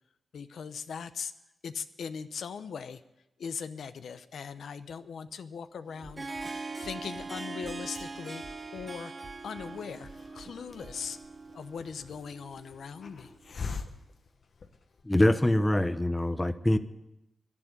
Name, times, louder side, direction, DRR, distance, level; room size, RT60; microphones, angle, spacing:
voice 1, 0.3-1.3 1.6-3.0 3.4-9.1 9.4-10.1 10.3-11.2 11.5-13.3, left 6 dB, 80° left, 10 dB, 0.7 m, -40 dB
Harp, 5.9-13.6, right 3 dB, 30° right, 0.7 m, -42 dB
sound 1, 6.0-6.5 6.8-7.3 7.6-8.1 8.4-8.9 9.2-9.7 10.0-10.5 10.8-10.9, right 2 dB, 50° right, 1.5 m, -50 dB
Hiss, 9.7-15.2, left 4 dB, 60° left, 1.2 m, -44 dB
voice 2, 15.0-16.8, left 1 dB, 10° left, 11 dB, 0.9 m, -24 dB
11.5 x 11.0 x 9.9 m, 0.91 s
cardioid pair, 90°, 0 cm